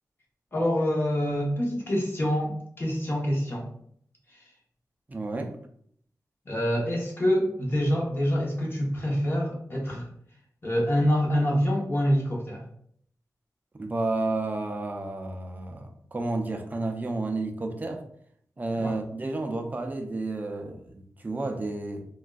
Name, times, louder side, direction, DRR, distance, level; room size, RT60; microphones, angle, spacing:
voice 1, 0.5-3.7 4.3-4.4 6.5-10.1 10.6-12.6 18.7-19.0, equal, 35° left, -3 dB, 0.8 m, -26 dB
voice 2, 5.1-5.6 13.7-18.0 18.6-22.1, right 2 dB, 25° right, 4 dB, 0.4 m, -31 dB
3.4 x 2.3 x 2.3 m, 0.64 s
wide cardioid pair, 95°, 6 cm